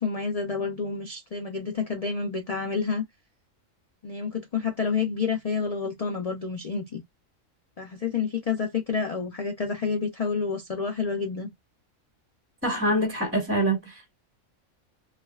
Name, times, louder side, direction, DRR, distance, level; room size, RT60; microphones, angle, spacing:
voice 1, 0.0-3.0 4.0-7.0 7.8-11.5, left 5 dB, 55° left, 0.4 m, -29 dB
voice 2, 12.6-14.2, right 1 dB, 10° right, 1.2 m, -25 dB
3.2 x 2.3 x 2.3 m
omnidirectional pair, 1.4 m